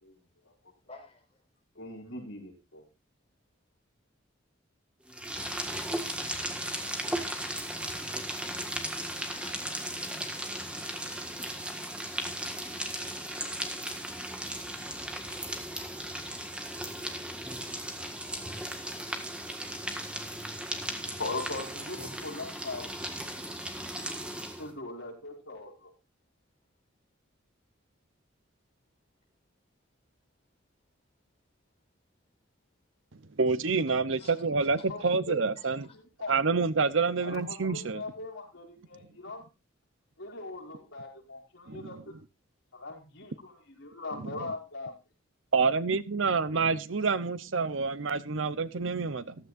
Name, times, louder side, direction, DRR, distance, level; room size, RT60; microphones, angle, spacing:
voice 1, 0.9-1.3 9.2-9.7 34.2-34.3 35.0-35.1 35.6-35.9, left 3 dB, 30° left, 1 dB, 5.0 m, -53 dB
voice 2, 1.8-2.8 21.2-22.9 24.6-25.9 34.9-35.4 35.9-36.3 37.2-39.4 40.2-42.1 42.7-44.9, left 2 dB, 80° left, -2 dB, 5.7 m, -40 dB
sound 1, 5.1-24.7, right 1 dB, 5° right, 1.6 m, -36 dB
voice 3, 33.4-35.9 36.3-38.0 41.7-42.0 44.1-44.5 45.5-49.4, right 4 dB, 75° right, 15 dB, 0.8 m, -28 dB
15.0 x 13.5 x 2.6 m, 0.26 s
head